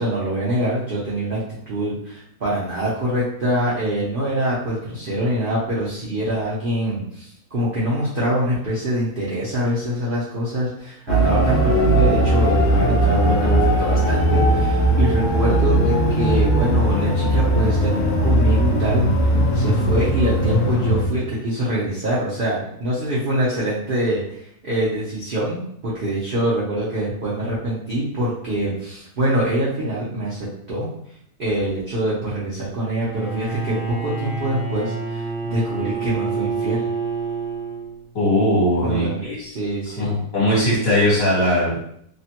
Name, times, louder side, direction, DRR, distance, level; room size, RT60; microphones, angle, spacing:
voice 1, 0.0-19.1 19.5-30.9 31.4-36.9 38.8-40.2, right 1 dB, 75° right, -8 dB, 0.5 m, -24 dB
sound 1, 11.1-21.1, right 1 dB, 80° left, 0.6 m, -18 dB
Bowed string instrument, 32.9-38.2, right 5 dB, 50° right, 1.3 m, -28 dB
voice 2, 38.1-39.4 40.0-41.9, left 1 dB, 50° left, -7 dB, 1.6 m, -19 dB
3.1 x 2.1 x 2.8 m, 0.70 s
omnidirectional pair, 1.9 m